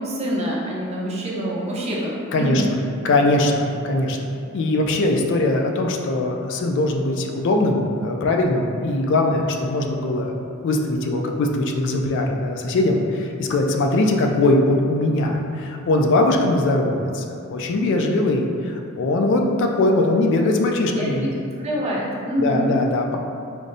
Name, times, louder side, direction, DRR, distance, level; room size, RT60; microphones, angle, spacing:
voice 1, 0.0-2.7 17.8-18.2 20.9-21.3 21.6-22.7, right 1 dB, 30° right, -4 dB, 0.6 m, -26 dB
voice 2, 2.3-2.6 3.0-4.2 4.5-10.3 10.6-21.3 22.4-23.2, left 2 dB, 60° left, 2 dB, 0.3 m, -21 dB
5.0 x 2.0 x 2.6 m, 2.6 s
head